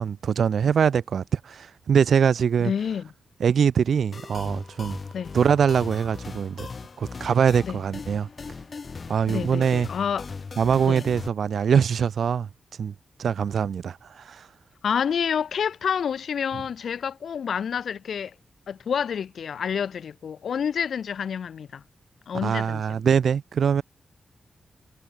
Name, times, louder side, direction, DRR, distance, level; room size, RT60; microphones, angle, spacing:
voice 1, 0.0-2.7 3.4-5.0 5.3-6.7 7.0-8.3 9.1-9.9 10.6-12.5 12.8-12.9 13.2-14.5 22.4-23.8, right 7 dB, 80° right, 4.5 m, -23 dB
voice 2, 2.6-3.1 5.1-5.4 7.6-7.8 9.3-10.3 10.9-11.1 14.8-18.4 18.7-21.8 22.3-23.0, left 7 dB, 85° left, 5.3 m, -28 dB
sound 1, 4.1-11.3, left 4 dB, 45° left, 5.1 m, -39 dB
wide cardioid pair, 135°, 0 cm